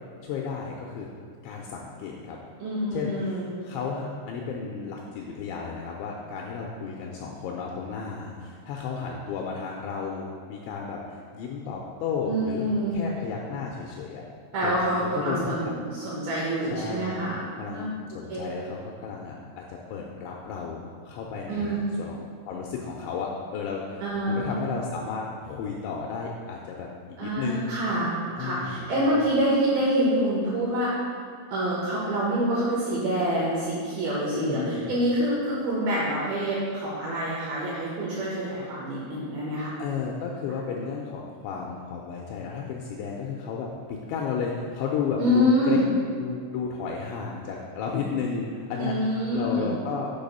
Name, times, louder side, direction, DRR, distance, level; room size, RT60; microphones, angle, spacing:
voice 1, 0.2-1.1 1.4-2.4 2.9-12.7 12.9-14.2 14.6-15.7 16.6-17.3 17.6-27.7 28.4-29.4 34.4-34.9 39.8-45.8 46.1-50.1, left 5 dB, 85° left, -1 dB, 2.6 m, -33 dB
voice 2, 2.6-3.5 12.3-13.0 14.5-17.4 17.7-17.9 18.3-18.5 21.5-21.8 24.0-24.6 27.2-30.9 31.5-39.7 45.2-45.9 48.8-49.7, equal, 70° right, -6 dB, 2.4 m, -26 dB
7.8 x 4.8 x 5.3 m, 2.1 s
omnidirectional pair, 5.8 m